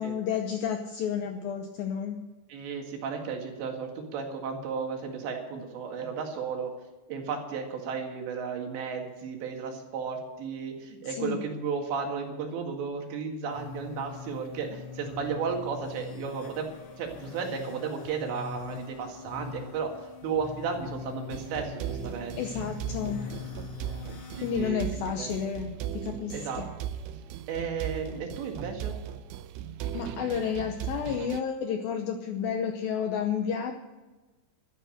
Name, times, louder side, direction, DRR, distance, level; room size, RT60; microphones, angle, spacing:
voice 1, 0.0-2.2 11.0-11.4 22.4-23.2 24.4-26.6 29.9-33.7, left 7 dB, 85° left, 5 dB, 2.0 m, -31 dB
voice 2, 2.5-6.7 7.1-16.7 17.0-19.9 20.2-22.4 24.4-25.3 26.3-26.6 27.5-29.0, right 5 dB, 70° right, 2 dB, 4.1 m, -34 dB
sound 1, 13.5-24.7, left 6 dB, 55° left, 2.3 m, -43 dB
sound 2, 21.3-31.4, right 10 dB, 90° right, 3.1 m, -38 dB
12.5 x 11.0 x 6.5 m, 1.2 s
omnidirectional pair, 5.5 m